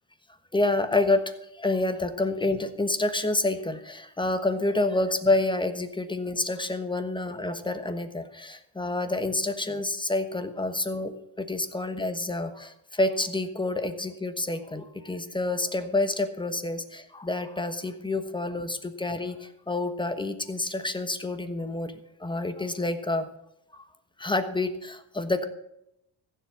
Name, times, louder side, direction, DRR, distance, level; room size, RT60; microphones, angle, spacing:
voice 1, 0.5-23.3 23.7-23.9 24.2-25.4, left 2 dB, 10° left, 9 dB, 1.2 m, -28 dB
15.5 x 7.5 x 6.3 m, 0.80 s
cardioid pair, 115°, 45 cm